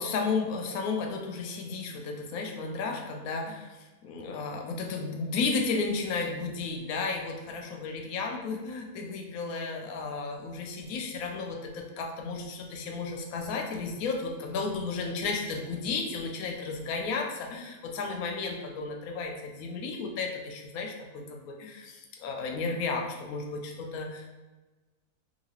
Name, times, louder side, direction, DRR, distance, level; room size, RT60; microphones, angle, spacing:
voice 1, 0.0-24.4, left 4 dB, 70° left, 2 dB, 1.0 m, -33 dB
2.9 x 2.9 x 2.8 m, 1.2 s
omnidirectional pair, 1.7 m